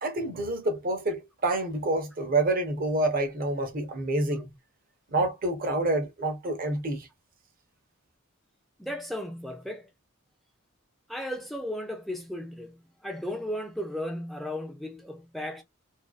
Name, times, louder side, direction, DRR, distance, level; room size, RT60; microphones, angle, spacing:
voice 1, 0.0-4.5 5.1-7.1, right 2 dB, 40° right, 0.8 m, -28 dB
voice 2, 8.8-9.9 11.1-15.6, left 1 dB, ahead, 0.6 m, -35 dB
2.5 x 2.2 x 2.3 m
head